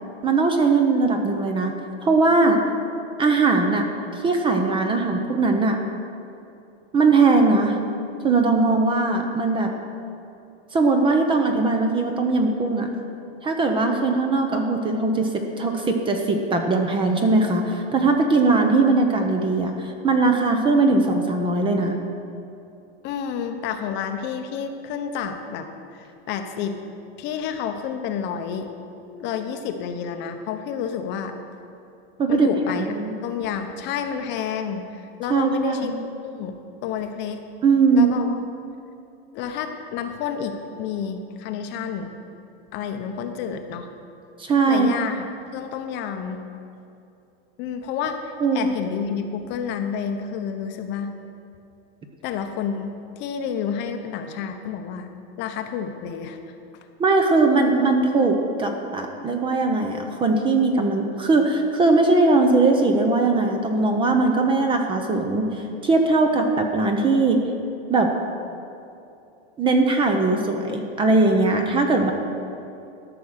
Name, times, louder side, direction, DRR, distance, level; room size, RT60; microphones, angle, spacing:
voice 1, 0.2-1.7 2.0-2.6 3.2-3.9 4.2-5.8 6.9-7.8 8.2-9.7 10.7-12.9 13.4-15.3 15.6-22.0 32.2-32.5 32.8-33.1 35.3-36.0 37.6-38.2 44.4-44.9 48.4-48.7 57.0-67.4 67.9-68.1 69.6-72.1, right 3 dB, 15° right, 4 dB, 0.7 m, -20 dB
voice 2, 23.0-26.8 27.2-28.7 29.1-31.3 32.3-32.8 33.2-35.9 36.2-37.4 37.9-38.3 39.3-42.1 42.7-43.9 44.7-45.3 45.5-46.4 47.6-51.1 52.2-55.1 55.4-56.4, left 7 dB, 35° left, 6 dB, 0.8 m, -30 dB
13.5 x 6.0 x 6.5 m, 2.7 s
supercardioid pair, 150°, 32 cm